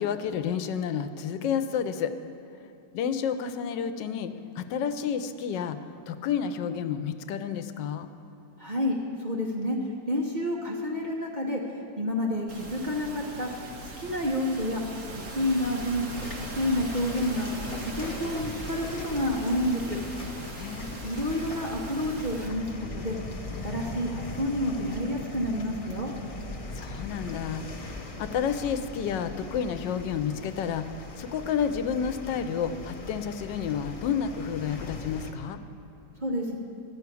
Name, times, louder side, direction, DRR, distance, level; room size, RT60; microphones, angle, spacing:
voice 1, 0.0-2.1 2.9-5.8 6.1-8.1 20.5-21.0 26.7-35.6, left 7 dB, 85° left, 10 dB, 1.3 m, -30 dB
voice 2, 8.6-9.8 10.1-11.6 12.0-13.5 13.8-14.8 15.1-20.0 21.0-23.2 23.6-26.1 36.2-36.6, left 1 dB, 35° right, -2 dB, 0.8 m, -29 dB
sound 1, 12.5-22.5, right 1 dB, 60° right, 1.6 m, -40 dB
sound 2, 16.1-35.3, left 2 dB, 55° left, 0.3 m, -40 dB
12.0 x 5.8 x 8.3 m, 2.9 s
omnidirectional pair, 1.9 m